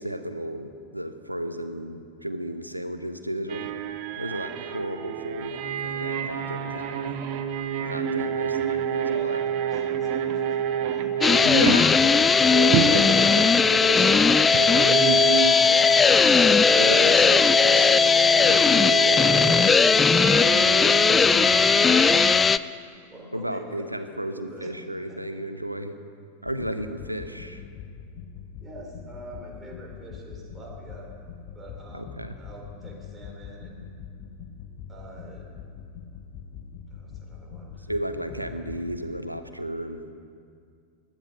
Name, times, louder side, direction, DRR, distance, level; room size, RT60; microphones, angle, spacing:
voice 1, 0.0-3.7 4.2-7.2 7.8-9.4 11.4-12.0 12.9-14.1 14.5-15.5 16.7-18.0 18.4-19.4 20.5-20.6 23.3-26.0 26.4-27.6 31.9-32.4 37.9-40.0, right 1 dB, 90° right, 9 dB, 0.9 m, -33 dB
sound 1, 3.5-22.4, right 8 dB, 45° right, 0.9 m, -29 dB
voice 2, 9.1-11.1 23.1-24.7 25.1-25.2 28.6-31.1 31.5-33.9 34.9-35.5 36.9-37.9, right 1 dB, 15° right, -2 dB, 3.8 m, -45 dB
sound 2, 11.2-22.6, left 5 dB, 15° left, 0.3 m, -18 dB
sound 3, 26.4-39.1, left 7 dB, 40° left, 1.2 m, -42 dB
19.5 x 12.0 x 5.4 m, 2.2 s
figure-of-eight pair, 90°, 0 cm